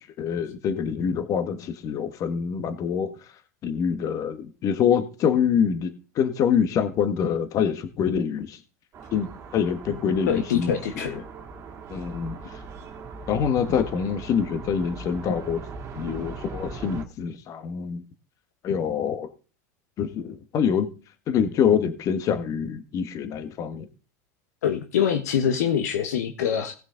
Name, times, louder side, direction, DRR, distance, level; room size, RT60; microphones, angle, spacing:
voice 1, 0.0-3.3 3.6-8.6 9.1-11.2 11.9-12.6 13.3-15.6 15.9-18.0 18.6-19.3 20.0-20.9 21.3-23.9, left 7 dB, 40° left, 1.4 m, -25 dB
sound 1, 8.9-17.0, right 4 dB, 30° right, 2.1 m, -40 dB
voice 2, 10.3-11.1 24.6-26.7, left 8 dB, 80° left, 1.4 m, -24 dB
18.0 x 6.2 x 3.9 m
supercardioid pair, 115°, 9 cm